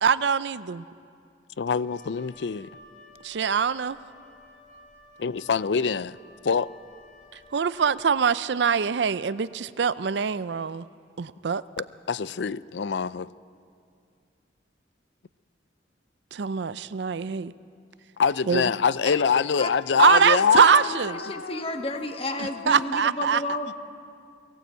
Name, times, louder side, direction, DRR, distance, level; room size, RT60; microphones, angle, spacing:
voice 1, 0.0-0.8 3.2-4.0 7.5-10.8 11.2-11.6 16.3-17.5 18.5-18.6 20.0-21.2 22.7-23.4, right 6 dB, 75° right, 0.5 m, -23 dB
voice 2, 1.6-2.7 5.2-6.2 6.4-6.7 11.8-13.3 18.2-21.6 22.4-22.9, left 6 dB, 75° left, 0.5 m, -25 dB
Wind instrument woodwind instrument, 1.8-8.3, left 1 dB, 55° left, 5.0 m, -53 dB
voice 3, 20.0-23.7, left 2 dB, 35° left, 1.4 m, -33 dB
21.5 x 17.0 x 8.2 m
head